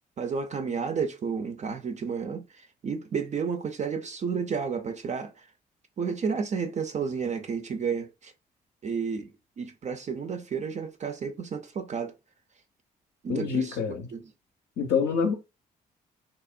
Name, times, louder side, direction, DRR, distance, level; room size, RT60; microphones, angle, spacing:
voice 1, 0.2-5.5 6.0-8.3 8.8-12.1 13.2-14.3, right 6 dB, 35° right, 0.4 m, -32 dB
voice 2, 13.3-14.1 14.8-15.4, left 6 dB, 50° left, 0.6 m, -26 dB
2.8 x 2.0 x 2.4 m
figure-of-eight pair, 40°, 21 cm